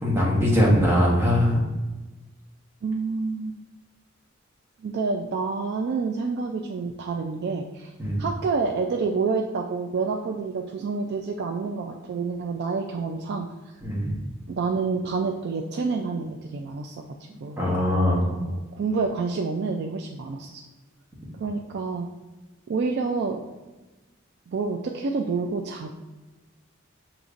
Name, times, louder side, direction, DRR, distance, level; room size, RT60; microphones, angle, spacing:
voice 1, 0.0-1.6 8.0-8.2 13.8-14.2 17.6-18.3, equal, 15° right, -6 dB, 1.1 m, -21 dB
voice 2, 2.8-3.6 4.8-7.9 8.2-13.5 14.5-17.1 17.4-17.6 18.3-20.6 21.4-22.1 22.7-23.4 24.5-25.9, right 4 dB, 55° right, 2 dB, 0.3 m, -28 dB
6.4 x 3.0 x 2.5 m, 1.2 s
head